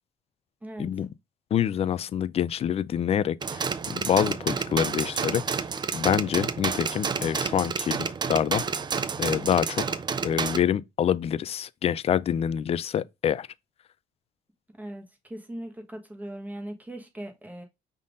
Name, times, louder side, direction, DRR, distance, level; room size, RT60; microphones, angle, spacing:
voice 1, 1.5-5.6 5.9-8.0 8.3-8.8 9.2-9.8 10.2-13.5, left 9 dB, 35° left, 0.3 m, -26 dB
sound 1, 3.4-10.6, right 5 dB, 25° right, 0.4 m, -30 dB
voice 2, 15.3-17.7, right 1 dB, 10° right, 1.3 m, -39 dB
5.5 x 3.6 x 2.5 m
cardioid pair, 110°, 17 cm